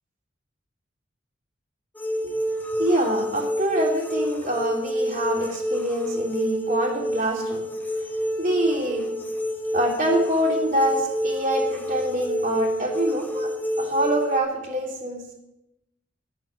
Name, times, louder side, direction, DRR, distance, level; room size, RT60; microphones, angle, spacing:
sound 1, 1.9-14.4, equal, 10° left, 1.0 m, -28 dB
voice 1, 2.7-7.6 8.4-9.0 9.7-13.5 13.8-15.3, right 1 dB, 45° right, -4 dB, 3.3 m, -25 dB
11.0 x 7.2 x 9.4 m, 0.88 s
head